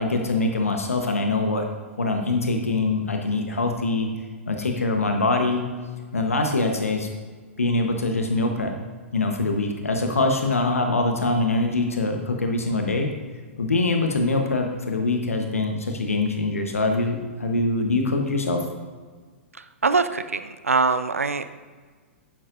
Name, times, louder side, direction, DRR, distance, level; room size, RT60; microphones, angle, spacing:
voice 1, 0.0-1.7 2.0-4.1 4.5-5.6 6.1-7.1 7.6-8.7 9.1-13.1 13.6-18.7, left 2 dB, 85° left, 3 dB, 1.1 m, -23 dB
voice 2, 19.5-21.4, right 4 dB, 90° right, 11 dB, 0.5 m, -23 dB
11.5 x 9.4 x 2.6 m, 1.5 s
figure-of-eight pair, 110°, 7 cm